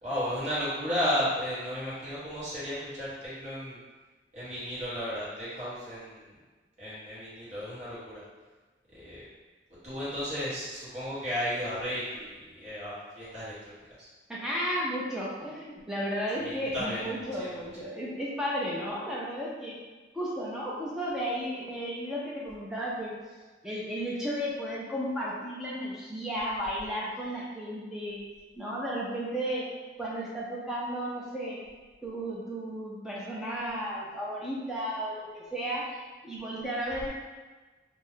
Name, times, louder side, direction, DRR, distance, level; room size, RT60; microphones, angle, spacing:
voice 1, 0.0-3.8 4.3-6.3 6.8-8.2 8.9-9.3 9.8-13.5 14.0-14.1 16.4-17.5, equal, 40° right, -11 dB, 1.2 m, -34 dB
voice 2, 14.3-19.7 20.1-23.1 23.6-28.2 28.5-29.6 30.0-31.6 32.0-36.0 36.2-37.1, equal, 5° right, -6 dB, 0.4 m, -33 dB
2.5 x 2.3 x 3.5 m, 1.3 s
head